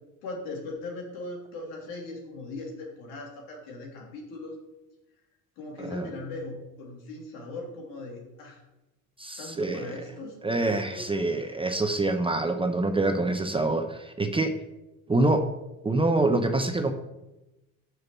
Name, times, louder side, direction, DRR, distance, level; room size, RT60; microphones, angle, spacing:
voice 1, 0.2-4.6 5.6-8.6 9.4-11.4, left 2 dB, 65° left, -1 dB, 3.3 m, -39 dB
voice 2, 9.2-9.9 10.4-14.6 15.1-15.5 15.8-16.9, right 2 dB, 15° right, 6 dB, 0.9 m, -26 dB
6.4 x 6.3 x 7.1 m, 0.97 s
hypercardioid pair, 65°, 40 cm